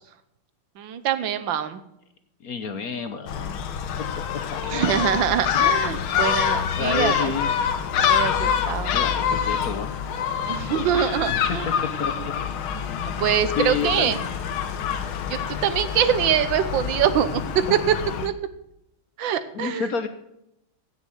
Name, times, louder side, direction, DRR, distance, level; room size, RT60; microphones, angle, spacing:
voice 1, 0.8-1.8 4.6-7.3 7.9-9.0 10.5-11.8 12.2-12.3 13.0-14.2 15.3-17.9 18.2-18.3 19.2-19.9, right 9 dB, 70° right, 12 dB, 1.6 m, -24 dB
voice 2, 2.4-3.5 4.5-4.8 6.4-6.5 6.7-7.5 8.3-9.9 11.2-12.3 13.6-14.3 19.5-20.1, left 6 dB, 55° left, 9 dB, 1.1 m, -30 dB
Gull seagull, 3.3-18.3, left 8 dB, 80° left, 1.7 m, -26 dB
15.5 x 6.4 x 7.0 m, 0.82 s
omnidirectional pair, 2.3 m